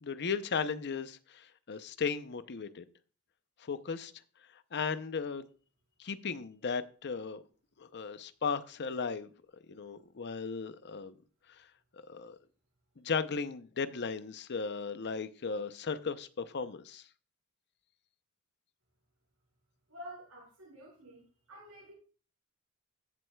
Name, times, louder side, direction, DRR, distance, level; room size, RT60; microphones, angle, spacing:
voice 1, 0.0-2.8 3.6-4.1 4.7-5.4 6.0-7.4 7.8-9.3 9.7-11.1 12.1-12.4 13.0-17.0, left 5 dB, 50° left, 0.6 m, -36 dB
voice 2, 19.9-21.9, equal, 85° right, 5.6 m, -50 dB
14.5 x 7.6 x 2.3 m
head